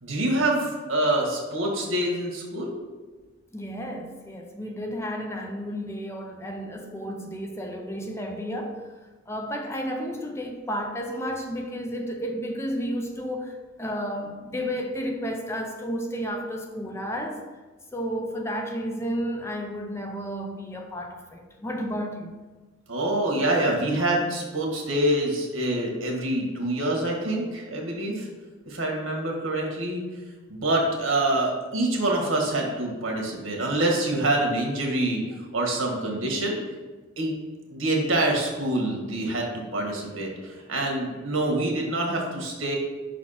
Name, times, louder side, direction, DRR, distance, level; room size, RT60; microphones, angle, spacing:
voice 1, 0.0-2.7 22.9-28.3 28.6-30.0 30.5-35.2 35.5-36.6 37.2-37.3 37.7-42.8, right 1 dB, 85° right, 0 dB, 1.6 m, -26 dB
voice 2, 3.5-8.9 9.3-17.5 17.9-22.3, equal, 15° left, 3 dB, 0.5 m, -32 dB
5.9 x 4.2 x 5.6 m, 1.3 s
head